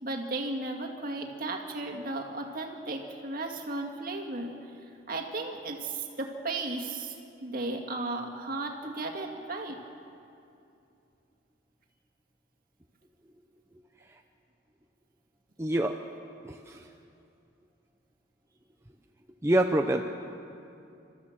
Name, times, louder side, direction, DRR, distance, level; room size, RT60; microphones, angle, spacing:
voice 1, 0.0-4.5 5.1-7.1 7.4-9.8, right 2 dB, 45° right, 2 dB, 2.1 m, -35 dB
voice 2, 15.6-16.0 16.4-16.9 19.4-20.0, right 1 dB, 15° right, 3 dB, 0.6 m, -26 dB
27.5 x 14.0 x 7.4 m, 2.7 s
head